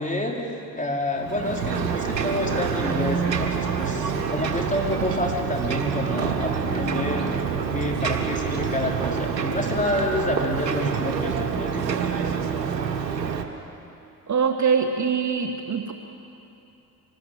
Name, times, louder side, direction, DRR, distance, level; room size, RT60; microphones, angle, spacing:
voice 1, 0.0-7.3 7.7-12.0, left 1 dB, 15° left, 0 dB, 4.6 m, -28 dB
Ocean, 1.2-13.4, right 6 dB, 85° right, 1.3 m, -27 dB
voice 2, 14.3-15.9, right 6 dB, 35° right, 5 dB, 1.7 m, -23 dB
24.5 x 20.0 x 8.3 m, 2.8 s
figure-of-eight pair, 45°, 49 cm